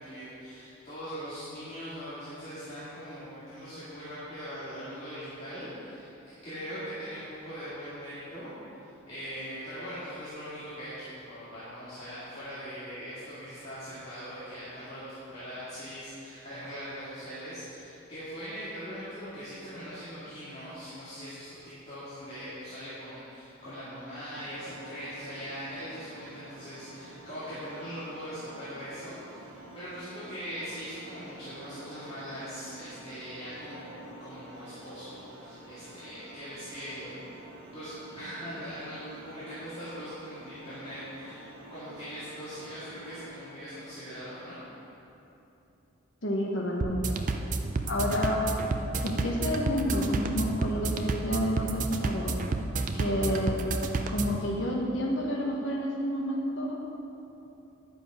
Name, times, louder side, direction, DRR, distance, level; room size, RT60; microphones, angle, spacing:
voice 1, 0.0-8.5 8.8-37.2 37.7-41.4 41.7-44.6, equal, 30° left, -13 dB, 2.1 m, -41 dB
sound 1, 24.3-43.2, right 2 dB, 60° right, 1.2 m, -49 dB
voice 2, 46.2-47.2 47.9-48.4 49.0-52.3 52.9-53.6 54.1-56.8, equal, 60° left, -1 dB, 1.2 m, -29 dB
sound 2, 46.8-54.4, right 3 dB, 40° right, 0.4 m, -31 dB
10.5 x 6.9 x 5.0 m, 2.9 s
head